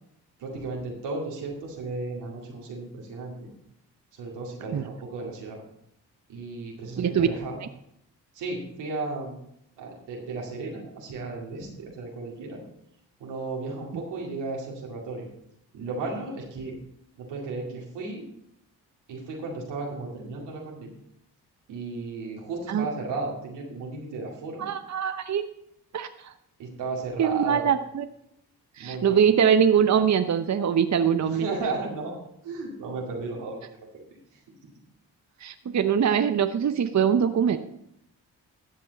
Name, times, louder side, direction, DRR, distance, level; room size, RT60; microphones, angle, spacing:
voice 1, 0.4-3.5 4.1-5.6 6.3-7.6 8.3-9.3 9.8-12.6 13.2-15.3 15.7-16.8 17.2-18.3 19.1-20.9 21.7-24.7 26.6-27.7 28.8-29.2 31.2-33.8 34.6-34.7, right 3 dB, 90° right, -2 dB, 2.4 m, -34 dB
voice 2, 7.0-7.3 22.7-22.9 24.6-25.4 25.9-26.3 27.2-28.1 28.8-31.5 35.4-37.6, right 8 dB, 40° right, 9 dB, 0.7 m, -23 dB
13.5 x 7.7 x 4.0 m, 0.76 s
supercardioid pair, 45°, 41 cm